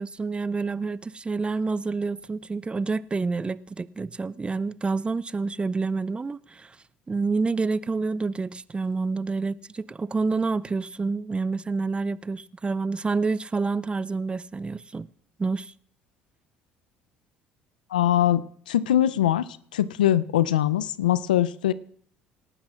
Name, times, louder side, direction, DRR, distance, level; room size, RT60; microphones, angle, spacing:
voice 1, 0.0-6.8 7.1-15.1 15.4-15.7, right 4 dB, 25° right, 0.5 m, -28 dB
voice 2, 17.9-19.5 19.7-21.7, left 12 dB, 85° left, 0.5 m, -22 dB
27.0 x 11.5 x 2.5 m
hypercardioid pair, 60°, 4 cm